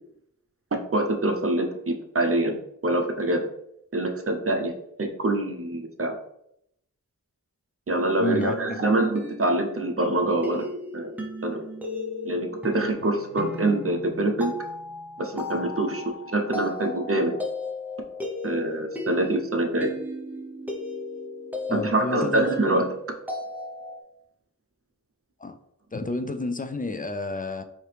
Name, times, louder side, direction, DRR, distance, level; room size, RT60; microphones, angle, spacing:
voice 1, 0.7-2.6 2.8-3.5 3.9-4.7 5.0-6.2 7.9-10.6 10.9-11.6 12.2-14.6 15.2-16.0 16.3-17.4 18.4-19.9 21.7-22.9, right 2 dB, 45° right, 4 dB, 0.7 m, -25 dB
sound 1, 8.1-24.0, left 2 dB, 5° right, 0.7 m, -36 dB
voice 2, 8.2-8.8 21.7-22.5 25.4-25.6 25.9-27.6, left 2 dB, 25° left, 8 dB, 0.3 m, -30 dB
4.6 x 2.8 x 3.3 m, 0.77 s
wide cardioid pair, 50°, 32 cm